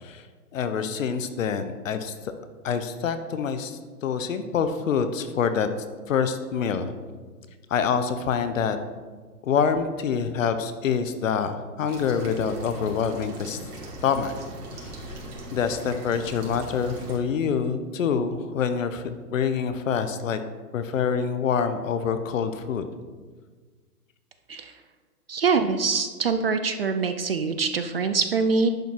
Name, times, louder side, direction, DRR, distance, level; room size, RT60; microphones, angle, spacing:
voice 1, 0.5-2.3 2.6-5.7 6.1-6.9 7.7-8.8 9.4-13.6 14.0-14.3 14.7-15.0 15.5-20.4 20.7-22.9, left 6 dB, 55° left, 10 dB, 0.9 m, -26 dB
sound 1, 11.9-17.2, right 1 dB, 75° right, 2.8 m, -39 dB
voice 2, 25.3-28.7, right 5 dB, 40° right, 9 dB, 0.4 m, -24 dB
10.5 x 5.4 x 4.5 m, 1.5 s
hypercardioid pair, 150°, 47 cm